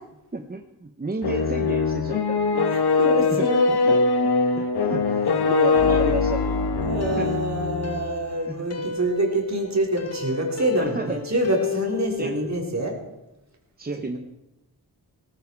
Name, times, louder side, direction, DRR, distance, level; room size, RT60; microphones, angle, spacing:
voice 1, 0.3-3.0 3.3-3.5 3.9-4.0 4.6-6.6 7.2-7.4 8.5-8.9 10.8-11.2 12.2-12.3 13.8-14.2, right 3 dB, 25° right, 5 dB, 1.1 m, -32 dB
sound 1, 1.2-8.2, left 4 dB, 75° left, 1.4 m, -22 dB
voice 2, 2.7-3.7 5.8-6.0 6.8-13.0, right 1 dB, 45° right, 0 dB, 4.3 m, -26 dB
sound 2, 6.3-12.6, left 4 dB, 40° left, 1.2 m, -34 dB
18.5 x 15.0 x 4.8 m, 0.91 s
wide cardioid pair, 90°, 38 cm